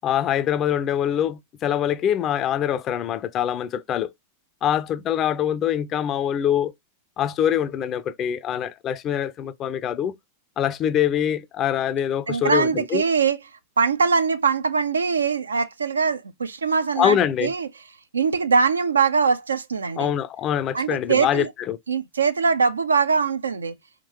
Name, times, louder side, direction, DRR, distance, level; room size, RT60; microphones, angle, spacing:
voice 1, 0.0-4.1 4.6-6.7 7.2-10.2 10.6-13.0 17.0-17.5 20.0-21.8, left 10 dB, 30° left, 0.5 m, -24 dB
voice 2, 12.3-13.4 13.8-17.7 18.1-20.1 20.7-21.5 21.9-23.8, right 5 dB, 75° right, 0.5 m, -22 dB
4.5 x 3.7 x 2.8 m
figure-of-eight pair, 90°, 0 cm